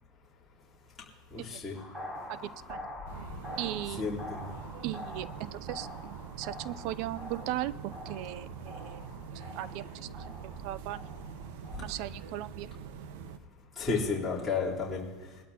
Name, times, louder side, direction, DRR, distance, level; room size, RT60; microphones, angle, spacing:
voice 1, 1.3-1.8 4.0-4.5 11.7-11.8 13.8-15.1, left 4 dB, 15° left, -8 dB, 3.6 m, -32 dB
sound 1, 1.7-11.9, left 1 dB, 5° right, 3.2 m, -46 dB
voice 2, 2.3-2.9 3.6-4.0 4.8-9.1 9.3-11.1 11.8-12.7, right 14 dB, 55° right, 17 dB, 0.5 m, -38 dB
sound 2, 3.1-13.4, right 6 dB, 75° right, 1.2 m, -44 dB
22.5 x 12.5 x 2.9 m, 1.4 s
supercardioid pair, 135°, 0 cm